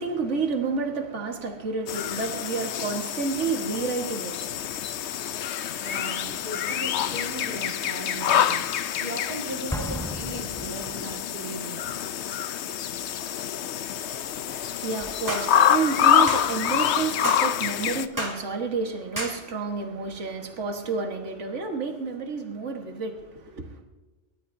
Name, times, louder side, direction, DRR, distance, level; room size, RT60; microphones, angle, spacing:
voice 1, 0.0-4.8 14.2-23.8, right 4 dB, 70° right, 1.8 m, -30 dB
sound 1, 1.9-18.1, left 9 dB, 70° left, 0.9 m, -27 dB
voice 2, 5.8-11.9, right 2 dB, 35° right, 2.2 m, -38 dB
Explosion, 9.7-11.5, equal, 5° left, 0.5 m, -35 dB
sound 2, 15.3-15.5 16.3-16.5 17.2-17.5 18.2-18.4 19.2-19.4, right 1 dB, 15° right, 2.5 m, -30 dB
28.0 x 12.5 x 2.7 m
omnidirectional pair, 1.3 m